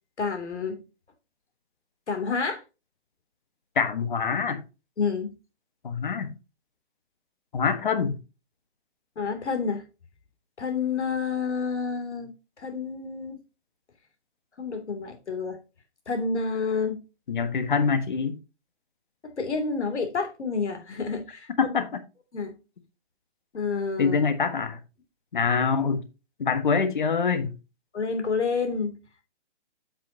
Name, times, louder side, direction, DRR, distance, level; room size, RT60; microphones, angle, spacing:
voice 1, 0.2-0.8 2.1-2.6 5.0-5.3 9.2-9.8 10.6-12.3 12.6-13.4 14.6-15.6 16.1-17.0 19.2-21.7 22.3-22.5 23.5-24.2 27.9-29.0, left 5 dB, 80° left, 3.0 m, -29 dB
voice 2, 3.7-4.6 5.8-6.3 7.5-8.2 17.3-18.3 21.6-22.0 24.0-24.8 25.3-26.0 26.4-27.5, left 5 dB, 45° left, 1.4 m, -25 dB
8.7 x 7.9 x 2.8 m
hypercardioid pair, 175°, 34 cm